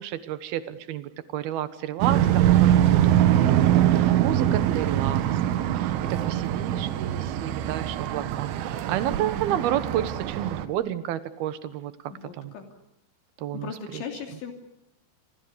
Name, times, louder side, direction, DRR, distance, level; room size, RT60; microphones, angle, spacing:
voice 1, 0.0-5.2 5.7-11.9 12.4-12.5 13.4-14.0, right 11 dB, 65° right, 13 dB, 2.9 m, -31 dB
sound 1, 2.0-10.7, right 12 dB, 90° right, 3.8 m, -23 dB
sound 2, 2.7-4.8 5.2-5.3, left 3 dB, 20° left, 1.8 m, -42 dB
voice 2, 4.2-4.6 12.1-12.7 13.5-14.5, left 6 dB, 75° left, 5 dB, 5.3 m, -38 dB
27.5 x 25.0 x 6.9 m, 0.76 s
omnidirectional pair, 5.4 m